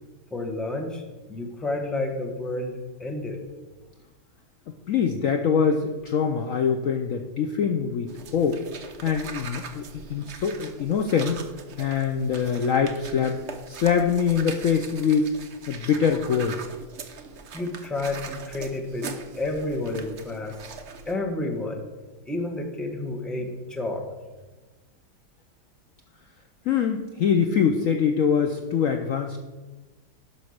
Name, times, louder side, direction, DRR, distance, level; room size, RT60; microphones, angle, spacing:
voice 1, 0.3-1.0 1.3-3.4 17.5-20.6 21.1-21.8 22.2-24.1, left 2 dB, ahead, 2 dB, 1.0 m, -30 dB
voice 2, 4.9-8.6 9.0-11.5 11.8-13.4 13.7-15.3 15.7-16.6 26.6-29.4, left 7 dB, 65° left, 6 dB, 0.9 m, -24 dB
sound 1, 8.1-21.2, right 5 dB, 50° right, 0.9 m, -41 dB
11.5 x 5.5 x 6.4 m, 1.2 s
omnidirectional pair, 1.9 m